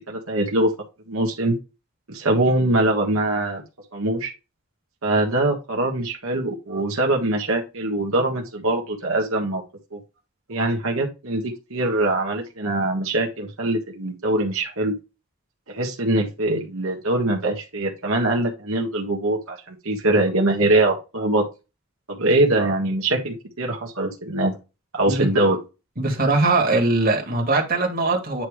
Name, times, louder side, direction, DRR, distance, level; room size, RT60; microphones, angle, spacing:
voice 1, 0.1-0.7 1.1-1.6 2.1-3.6 3.9-4.3 5.0-9.6 9.9-10.0 10.5-14.9 15.7-21.4 22.1-24.5 24.9-25.6, right 2 dB, 80° right, 1.6 m, -23 dB
voice 2, 26.0-28.5, right 3 dB, 45° right, 2.2 m, -21 dB
9.2 x 3.2 x 4.9 m
head